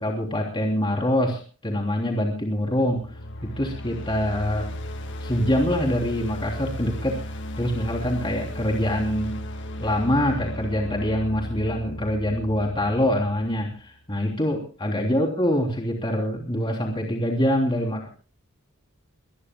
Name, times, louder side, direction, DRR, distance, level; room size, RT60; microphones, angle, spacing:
voice 1, 0.0-3.0 3.4-4.7 5.2-7.2 7.6-9.4 9.8-18.1, left 1 dB, 25° left, 0 dB, 3.4 m, -25 dB
sound 1, 2.8-13.8, left 1 dB, 55° left, 1.7 m, -35 dB
24.0 x 19.0 x 2.3 m, 0.37 s
head